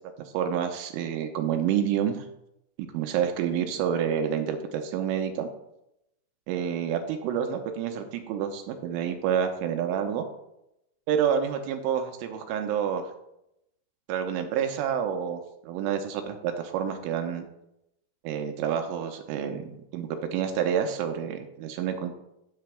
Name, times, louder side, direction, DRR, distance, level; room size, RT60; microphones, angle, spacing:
voice 1, 0.3-2.2 2.9-5.5 6.5-10.2 11.1-13.1 14.1-17.5 18.2-22.1, right 8 dB, 85° right, 5 dB, 3.2 m, -28 dB
18.0 x 6.9 x 2.3 m, 0.84 s
omnidirectional pair, 5.6 m